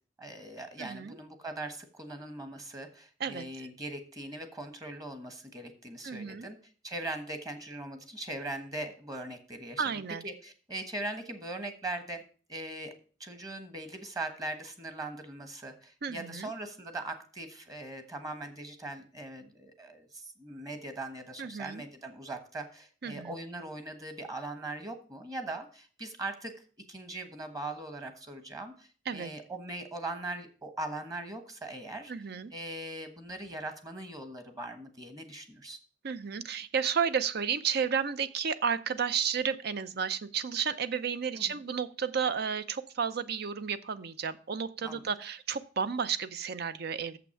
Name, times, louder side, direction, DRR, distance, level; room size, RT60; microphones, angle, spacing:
voice 1, 0.2-6.6 6.8-9.8 10.2-12.2 12.5-12.9 13.2-32.1 32.5-35.8 41.4-41.6 44.8-45.1, right 2 dB, 20° right, 8 dB, 1.2 m, -40 dB
voice 2, 0.8-1.2 3.2-3.4 6.0-6.5 9.8-10.2 16.0-16.5 21.4-21.8 23.0-23.4 29.1-29.3 32.1-32.5 36.0-47.2, right 6 dB, 55° right, 13 dB, 0.6 m, -32 dB
7.2 x 5.9 x 7.0 m, 0.39 s
head